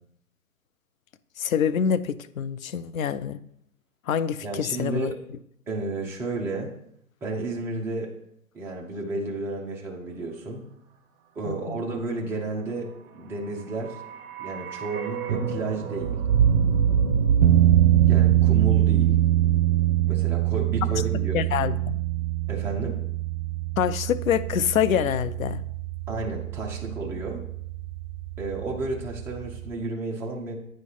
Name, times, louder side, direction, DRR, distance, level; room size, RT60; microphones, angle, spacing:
voice 1, 1.4-3.4 4.1-5.1 11.5-11.8 21.3-22.0 23.8-25.6, left 8 dB, 70° left, 14 dB, 0.6 m, -26 dB
voice 2, 4.4-5.2 5.7-6.7 7.2-8.1 8.5-10.6 11.4-14.0 14.4-16.1 18.1-19.2 20.1-21.4 22.5-23.0 26.1-27.5 28.4-30.6, right 2 dB, 5° right, -2 dB, 0.5 m, -32 dB
sound 1, 13.6-21.7 22.0-22.1, right 6 dB, 40° right, 1.1 m, -26 dB
sound 2, 17.4-29.7, right 14 dB, 65° right, 0.6 m, -24 dB
8.9 x 3.2 x 5.5 m, 0.72 s
hypercardioid pair, 130°, 42 cm